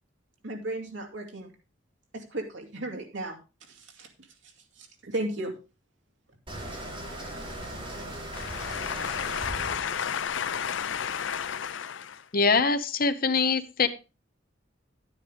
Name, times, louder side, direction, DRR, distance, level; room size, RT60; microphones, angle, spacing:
voice 1, 0.4-1.5 2.1-3.4 3.7-4.1 4.8-5.5, right 1 dB, 65° right, 2.5 m, -35 dB
sound 1, 6.5-11.4, right 1 dB, 25° right, 3.4 m, -39 dB
voice 2, 8.3-12.2, left 8 dB, 65° left, 0.5 m, -32 dB
voice 3, 12.3-13.9, left 4 dB, 45° left, 0.9 m, -23 dB
11.0 x 9.6 x 3.5 m
head